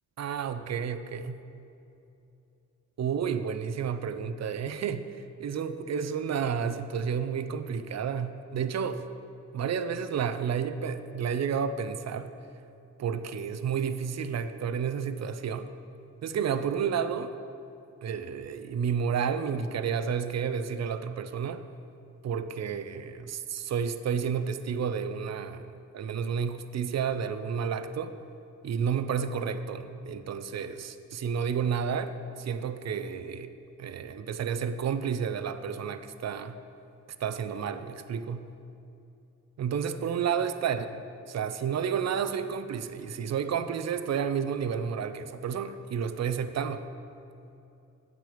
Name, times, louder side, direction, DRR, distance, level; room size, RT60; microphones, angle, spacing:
voice 1, 0.2-1.4 3.0-9.0 9.5-12.3 13.0-15.7 16.2-17.3 18.0-21.6 22.2-28.2 28.6-33.5 33.8-36.6 37.2-38.5 39.6-40.8 41.3-46.8, right 7 dB, 60° right, 11 dB, 0.5 m, -31 dB
9.3 x 7.4 x 5.0 m, 2.8 s
cardioid pair, 90°, 31 cm